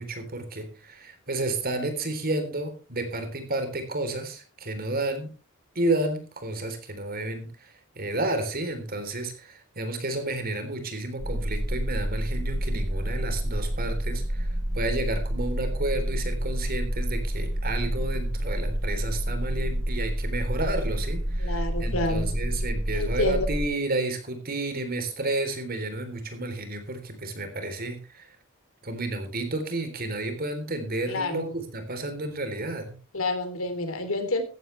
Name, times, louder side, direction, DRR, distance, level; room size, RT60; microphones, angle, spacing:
voice 1, 0.0-5.3 5.8-28.4 28.8-33.0, right 2 dB, 45° right, 7 dB, 3.7 m, -31 dB
sound 1, 11.2-23.7, equal, 70° right, 5.8 m, -29 dB
voice 2, 21.4-22.3 22.9-23.5 31.1-31.5 33.1-34.4, left 2 dB, 70° left, 8 dB, 3.2 m, -29 dB
15.5 x 14.5 x 3.3 m, 0.35 s
head